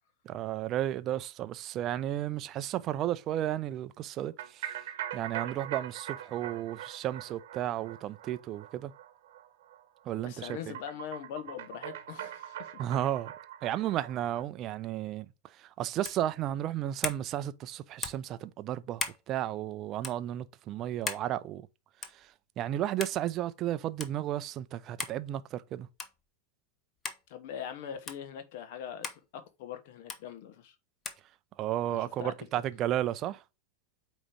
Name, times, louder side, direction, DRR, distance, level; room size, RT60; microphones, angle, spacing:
voice 1, 0.3-4.8 5.1-8.9 10.1-10.5 12.8-13.3 13.6-15.3 15.6-21.7 22.1-22.3 22.6-25.9 31.6-33.4, right 12 dB, 35° right, 0.5 m, -33 dB
sound 1, 4.4-14.4, right 11 dB, 55° right, 1.0 m, -42 dB
voice 2, 10.2-12.8 27.3-30.7 31.9-32.3, left 9 dB, 50° left, 1.1 m, -42 dB
sound 2, 16.0-16.3 17.0-17.2 18.0-18.3 19.0-19.2 20.0-20.2 21.1-21.3 22.0-22.2 23.0-23.2 24.0-24.1 25.0-25.2 26.0-26.2 27.0-27.2 28.1-28.2 29.0-29.2 30.1-30.2 31.0-31.2, left 4 dB, 20° left, 0.9 m, -37 dB
8.6 x 3.1 x 4.9 m
figure-of-eight pair, 90°, 0 cm